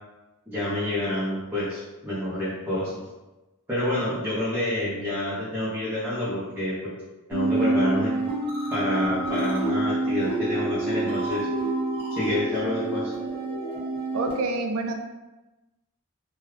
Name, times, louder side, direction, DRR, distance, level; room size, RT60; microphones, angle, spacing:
voice 1, 0.5-2.9 3.7-6.9 7.3-8.1 8.7-11.5 12.1-13.1, left 1 dB, 10° right, -10 dB, 0.7 m, -28 dB
sound 1, 7.3-14.3, right 2 dB, 25° right, 1.0 m, -27 dB
voice 2, 14.1-14.9, right 3 dB, 80° right, 4 dB, 0.4 m, -27 dB
3.0 x 2.3 x 3.2 m, 1.1 s
head